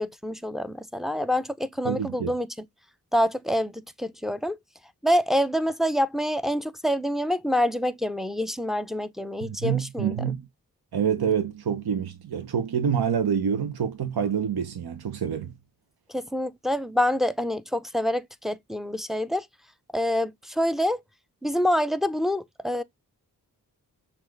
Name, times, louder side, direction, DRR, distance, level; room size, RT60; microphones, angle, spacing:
voice 1, 0.0-2.5 3.1-4.6 5.0-10.1 16.1-19.5 19.9-21.0 21.4-22.8, equal, ahead, 0.4 m, -26 dB
voice 2, 1.8-2.3 9.4-10.5 10.9-15.5, right 7 dB, 75° right, 0.8 m, -27 dB
5.9 x 2.5 x 3.2 m
cardioid pair, 50°, 38 cm